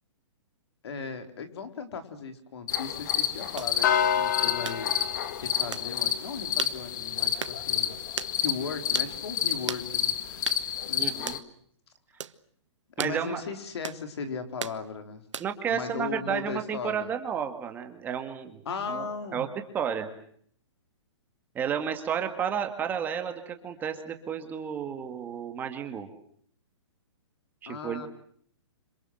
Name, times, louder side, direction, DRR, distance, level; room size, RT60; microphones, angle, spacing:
voice 1, 0.8-8.0 8.4-11.1 13.0-15.2 15.7-17.1 18.7-19.5 27.7-28.1, left 5 dB, 60° left, 8 dB, 4.3 m, -37 dB
sound 1, 2.7-11.4, left 9 dB, 40° left, 1.9 m, -29 dB
sound 2, 3.6-3.7 4.6-4.8 5.7-5.9 6.6-6.8 7.4-7.6 8.2-8.3 8.9-9.1 9.7-9.9 10.4-10.6 11.3-11.4 12.2-12.4 13.0-13.2 13.8-14.0 14.6-14.8 15.3-15.6, right 7 dB, 85° right, 1.6 m, -35 dB
voice 2, 11.0-11.4 13.0-13.4 15.4-18.6 18.9-19.5 19.7-20.1 21.5-26.1 27.6-28.1, right 8 dB, 10° right, 6 dB, 2.0 m, -32 dB
27.0 x 26.5 x 7.8 m, 0.62 s
hypercardioid pair, 165°, 15 cm